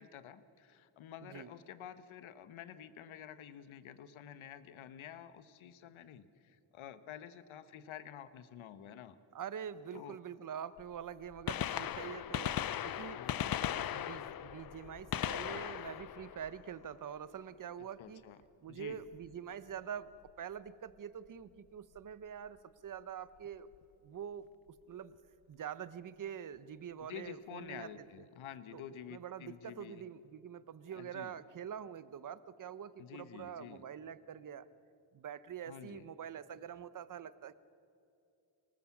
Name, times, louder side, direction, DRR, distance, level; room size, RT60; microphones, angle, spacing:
voice 1, 0.0-9.2 9.9-10.2 13.1-13.9 18.0-18.4 18.7-19.0 27.0-30.0 30.9-31.3 33.0-33.8 35.7-36.0, left 9 dB, 85° left, 12 dB, 1.1 m, -50 dB
voice 2, 1.2-1.5 9.3-13.3 13.9-18.2 18.6-20.1 20.4-22.6 22.8-23.7 24.0-24.5 24.9-25.1 25.5-27.9 28.7-28.8 29.1-34.7 35.1-37.5, right 8 dB, 45° right, 16 dB, 0.8 m, -45 dB
Gunshot gunfire, 10.8-10.9 11.3-17.2 19.1-19.3 20.3-20.4 22.0-22.1 23.5-23.6 23.7-23.8, left 10 dB, 50° left, 0.6 m, -38 dB
24.5 x 19.0 x 7.2 m, 2.6 s
cardioid pair, 110°, 46 cm